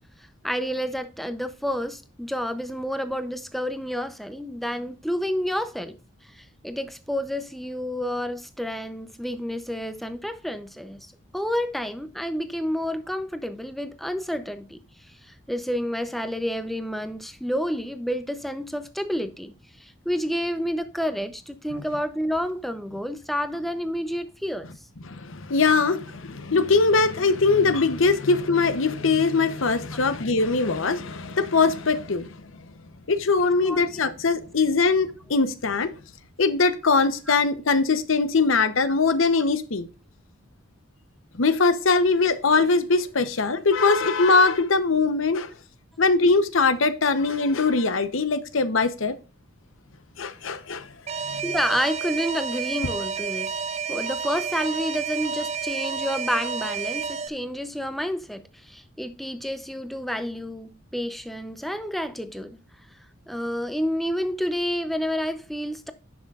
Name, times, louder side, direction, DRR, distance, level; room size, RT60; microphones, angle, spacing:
voice 1, 0.4-6.0 6.3-11.1 11.3-14.8 15.2-24.7 29.9-30.0 33.6-34.0 37.3-37.4 39.4-39.5 51.4-53.6 53.9-62.6 63.3-65.9, equal, ahead, 0.6 m, -29 dB
voice 2, 25.1-32.4 33.1-35.9 36.4-39.9 41.4-45.5 46.0-49.2 50.2-50.9 51.3-51.4, left 4 dB, 75° left, 0.9 m, -21 dB
Alarm, 51.1-57.3, right 6 dB, 30° right, 0.3 m, -30 dB
10.5 x 6.0 x 2.4 m
head